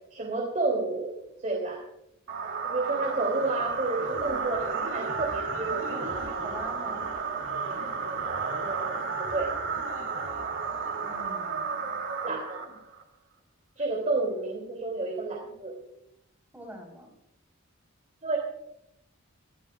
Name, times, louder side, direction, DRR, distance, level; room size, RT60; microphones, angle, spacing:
voice 1, 0.1-1.1 1.4-1.8 2.6-6.2 8.4-9.5 12.2-12.8 13.8-15.8 18.2-18.4, right 3 dB, 35° right, -2 dB, 3.1 m, -31 dB
sound 1, 2.3-13.0, right 5 dB, 65° right, 2.8 m, -32 dB
voice 2, 6.4-7.1 11.0-12.0 16.5-17.1, equal, 10° right, 0 dB, 4.2 m, -44 dB
23.5 x 15.0 x 2.5 m, 0.80 s
head